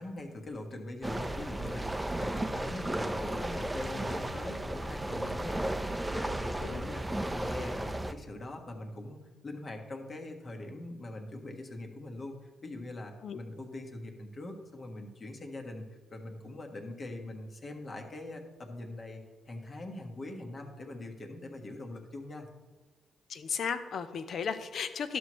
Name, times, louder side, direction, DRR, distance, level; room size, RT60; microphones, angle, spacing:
voice 1, 0.0-19.2 19.5-22.5, left 2 dB, 40° left, 3 dB, 1.4 m, -42 dB
sound 1, 1.0-8.1, right 1 dB, 15° right, 0.6 m, -34 dB
voice 2, 23.3-25.2, left 6 dB, 65° left, 10 dB, 0.7 m, -35 dB
11.5 x 6.2 x 3.1 m, 1.3 s
supercardioid pair, 60°, 0 cm